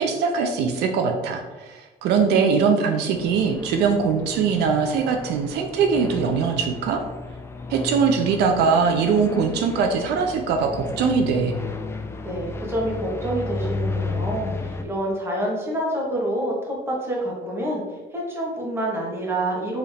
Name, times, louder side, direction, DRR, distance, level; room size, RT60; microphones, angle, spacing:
voice 1, 0.0-7.0 7.7-11.6, right 5 dB, 80° right, 4 dB, 0.5 m, -21 dB
sound 1, 3.1-14.8, left 3 dB, 15° left, 0.4 m, -33 dB
voice 2, 12.2-17.8 18.1-19.8, right 1 dB, 15° right, -3 dB, 1.4 m, -27 dB
4.6 x 3.1 x 3.3 m, 1.2 s
cardioid pair, 110°, 17 cm